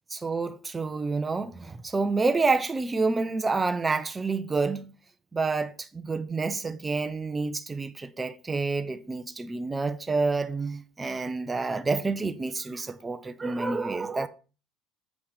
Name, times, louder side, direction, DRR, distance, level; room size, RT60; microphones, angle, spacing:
voice 1, 0.1-4.9 5.3-14.3, right 3 dB, 10° right, 0.4 m, -28 dB
7.1 x 4.9 x 5.2 m
cardioid pair, 175°, 0 cm